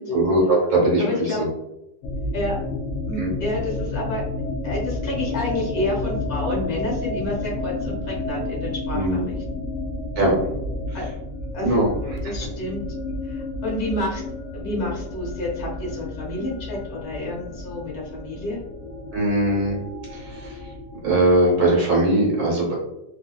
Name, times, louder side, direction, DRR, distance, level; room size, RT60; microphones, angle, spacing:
voice 1, 0.1-1.5 3.2-3.3 8.9-9.2 10.1-10.3 10.9-11.0 11.6-12.2 19.1-19.8 20.1-20.6 21.0-22.8, right 1 dB, 60° right, -4 dB, 1.4 m, -20 dB
voice 2, 1.0-1.4 2.3-2.6 3.1-4.2 4.6-9.6 10.9-11.1 11.5-11.8 12.2-12.8 13.2-14.2 14.5-18.6, left 1 dB, 60° left, -3 dB, 1.4 m, -29 dB
sound 1, 2.0-21.9, left 2 dB, 90° left, 0.7 m, -31 dB
3.2 x 2.7 x 2.2 m, 0.88 s
omnidirectional pair, 1.9 m